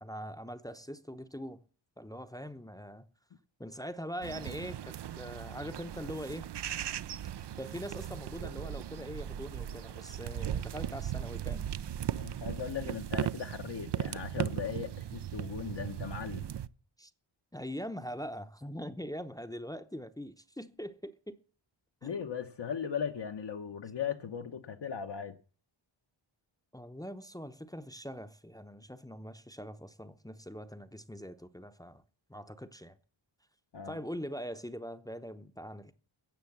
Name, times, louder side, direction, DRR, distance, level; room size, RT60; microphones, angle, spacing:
voice 1, 0.0-1.6 2.0-3.1 3.6-6.5 7.6-11.7 17.0-17.1 17.5-21.4 22.0-22.2 26.7-32.0 32.3-33.0 33.9-35.9, equal, 10° left, 0.8 m, -42 dB
sound 1, 4.2-16.7, right 10 dB, 60° right, 0.6 m, -38 dB
voice 2, 12.2-16.5 22.0-25.4 33.7-34.0, left 7 dB, 60° left, 1.0 m, -38 dB
16.5 x 7.1 x 7.2 m
wide cardioid pair, 95°, 48 cm